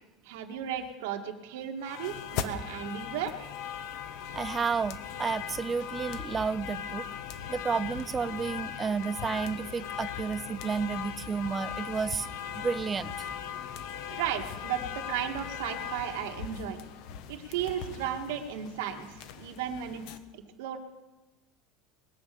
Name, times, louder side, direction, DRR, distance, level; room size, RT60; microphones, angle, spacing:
voice 1, 0.2-3.4 14.1-16.8 17.3-20.0 20.3-20.8, right 9 dB, 75° right, 4 dB, 2.0 m, -35 dB
sound 1, 1.8-20.2, left 8 dB, 55° left, 1.1 m, -39 dB
voice 2, 4.4-7.1 7.5-12.3 12.6-13.3, right 5 dB, 15° right, 17 dB, 0.4 m, -31 dB
21.5 x 8.2 x 6.9 m, 1.1 s
supercardioid pair, 160°, 0 cm